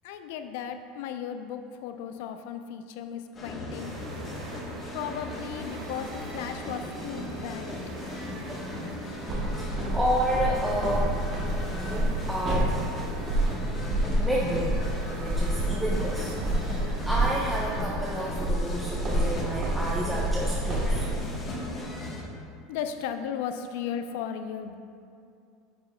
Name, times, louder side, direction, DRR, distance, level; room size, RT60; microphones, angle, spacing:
voice 1, 0.0-3.9 4.9-7.7 14.2-14.3 22.7-24.8, left 8 dB, 75° left, 8 dB, 0.4 m, -36 dB
sound 1, 3.3-22.2, left 2 dB, 25° left, 1.1 m, -38 dB
sound 2, 3.8-21.1, right 3 dB, 60° right, 0.7 m, -44 dB
sound 3, 9.3-21.1, right 1 dB, 40° right, 1.1 m, -29 dB
voice 2, 9.6-11.2 11.7-12.8 14.2-14.9 15.2-21.1, right 1 dB, 5° right, -6 dB, 0.6 m, -30 dB
8.6 x 5.7 x 2.2 m, 2.4 s
supercardioid pair, 140°, 0 cm